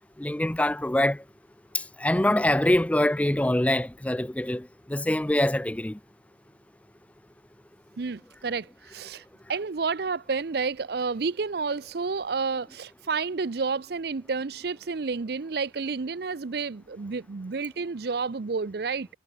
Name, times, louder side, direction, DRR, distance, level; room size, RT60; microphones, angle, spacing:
voice 1, 0.2-1.2 1.7-6.0, left 1 dB, 5° left, 0.4 m, -24 dB
voice 2, 8.0-19.1, right 4 dB, 60° right, 0.6 m, -30 dB
head